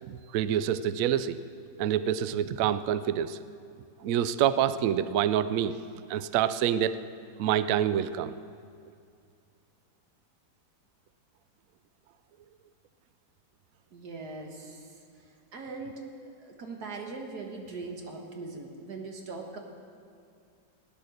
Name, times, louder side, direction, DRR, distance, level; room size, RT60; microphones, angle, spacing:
voice 1, 0.0-1.4 1.8-3.4 4.0-5.8 6.1-7.0 7.4-8.3, right 10 dB, 90° right, 14 dB, 0.7 m, -27 dB
voice 2, 13.9-16.0 16.4-19.6, right 3 dB, 60° right, 2 dB, 2.1 m, -41 dB
16.5 x 10.5 x 6.5 m, 2.3 s
omnidirectional pair, 2.0 m